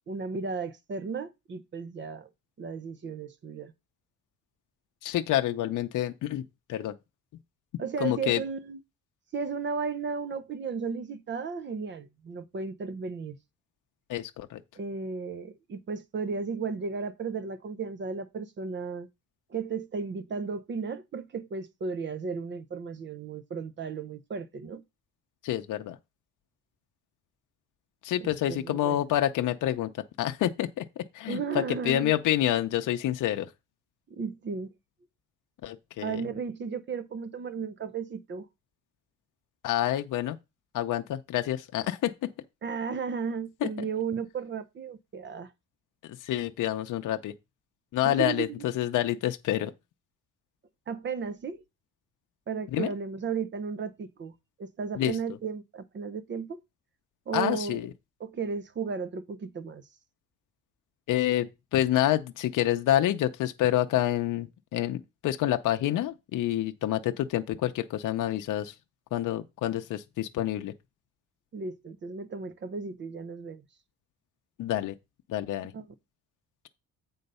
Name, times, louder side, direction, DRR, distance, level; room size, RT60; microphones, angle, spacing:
voice 1, 0.1-2.3 2.6-3.7 7.8-8.8 9.3-13.4 14.8-19.1 19.5-24.8 28.2-29.0 31.3-32.1 34.1-34.7 36.0-38.5 42.6-45.5 48.0-48.7 50.9-51.6 52.5-54.3 54.6-56.6 57.3-57.9 58.2-59.8 71.5-73.6 75.7-75.8, right 5 dB, 35° right, 0.6 m, -34 dB
voice 2, 5.0-6.9 8.0-8.4 14.1-14.6 25.4-26.0 28.0-29.9 30.2-30.9 31.1-33.5 35.6-36.2 39.6-40.4 40.7-42.3 43.6-43.7 46.2-47.3 47.9-49.7 52.7-52.9 55.0-55.1 57.3-57.9 61.1-68.7 69.1-70.7 74.6-74.9 75.3-75.7, left 12 dB, 65° left, 0.6 m, -28 dB
7.9 x 3.9 x 5.4 m
cardioid pair, 170°, 33 cm